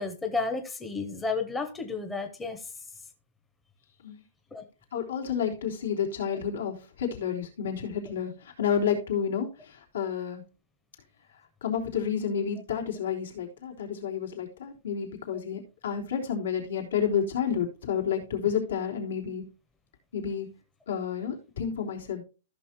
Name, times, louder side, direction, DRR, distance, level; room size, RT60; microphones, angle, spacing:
voice 1, 0.0-2.6 4.5-4.6, left 3 dB, 5° left, 0.7 m, -32 dB
voice 2, 4.9-10.4 11.6-19.5 20.1-20.5 20.9-22.2, left 7 dB, 90° left, 3.5 m, -30 dB
14.5 x 6.0 x 3.0 m
hypercardioid pair, 175°, 0 cm